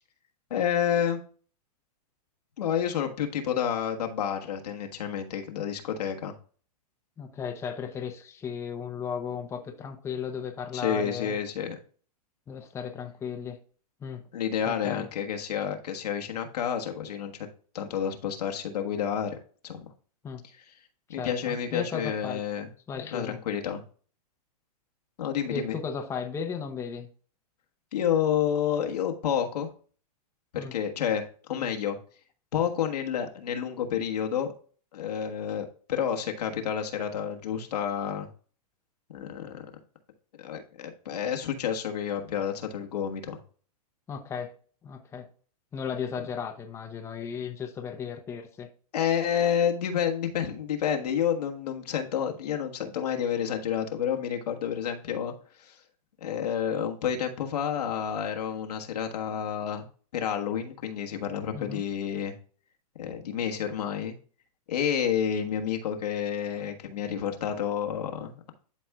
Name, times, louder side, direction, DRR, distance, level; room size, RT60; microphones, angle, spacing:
voice 1, 0.5-1.2 2.6-6.3 10.7-11.8 14.3-17.3 17.7-19.4 19.6-19.9 21.1-22.7 22.9-23.8 25.2-25.8 27.9-29.7 30.5-32.0 32.5-34.5 34.9-38.3 39.1-39.7 40.4-43.4 48.9-55.3 55.6-55.8 56.2-59.8 60.1-62.3 63.0-64.1 64.7-68.5, left 8 dB, 85° left, 1.4 m, -29 dB
voice 2, 7.2-11.4 12.5-13.6 14.0-14.2 14.7-15.1 20.2-20.4 21.1-22.4 22.9-23.4 25.4-27.1 30.6-30.8 44.1-44.5 44.8-45.3 45.7-48.7 61.5-61.8, left 6 dB, 15° left, 0.7 m, -35 dB
12.0 x 4.3 x 2.3 m
hypercardioid pair, 145°, 20 cm